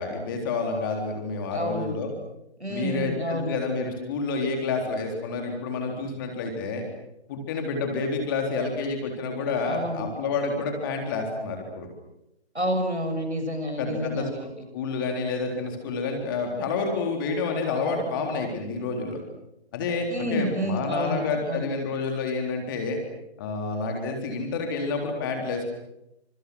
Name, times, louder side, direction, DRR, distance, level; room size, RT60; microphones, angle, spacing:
voice 1, 0.0-2.1 2.7-6.8 7.3-11.9 13.8-14.3 14.7-19.2 19.7-23.0 23.4-25.7, left 4 dB, 20° left, 3 dB, 3.9 m, -29 dB
voice 2, 1.5-1.9 2.6-3.6 9.6-10.1 12.5-14.5 20.1-21.6, equal, 85° right, 6 dB, 7.3 m, -29 dB
29.5 x 27.0 x 6.4 m, 0.85 s
figure-of-eight pair, 145°, 33 cm